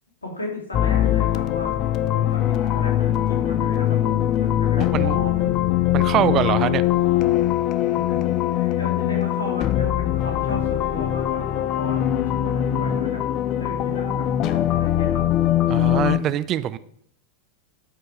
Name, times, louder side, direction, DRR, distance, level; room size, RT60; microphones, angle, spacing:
voice 1, 0.2-1.7 2.1-5.6 7.9-13.2 13.6-15.2, left 1 dB, 75° left, -1 dB, 2.9 m, -35 dB
sound 1, 0.7-16.2, left 12 dB, 35° left, 0.5 m, -22 dB
voice 2, 4.8-5.2 5.9-6.8 15.7-16.8, right 12 dB, 35° right, 15 dB, 0.4 m, -23 dB
12.5 x 5.3 x 4.9 m, 0.67 s
figure-of-eight pair, 90°, 0 cm